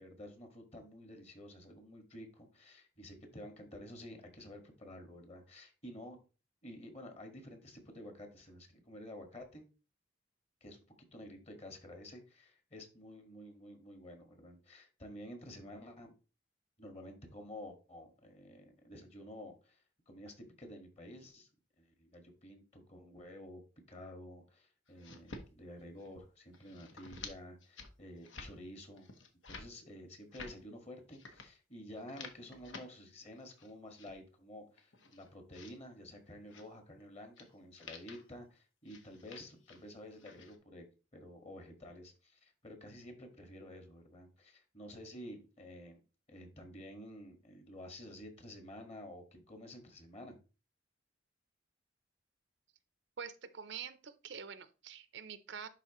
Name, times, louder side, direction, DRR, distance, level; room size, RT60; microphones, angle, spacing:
voice 1, 0.0-6.2 6.6-9.6 10.6-10.8 11.1-16.1 16.8-21.5 21.8-23.6 23.9-29.1 29.4-46.0 46.3-50.4, left 1 dB, 35° left, 4 dB, 1.8 m, -51 dB
sound 1, 24.9-25.5 25.8-26.2 26.5-27.3 27.6-27.9 28.2-28.5 29.0-29.7 30.1-30.6 31.1-31.5 31.9-32.8 33.3-34.1 34.7-35.7 36.5-36.7 37.4-37.5 37.8-38.2 38.9-39.8 40.1-40.6, left 4 dB, 85° left, 1.2 m, -51 dB
voice 2, 53.2-55.7, right 7 dB, 65° right, 13 dB, 0.6 m, -46 dB
10.5 x 4.2 x 3.0 m, 0.33 s
head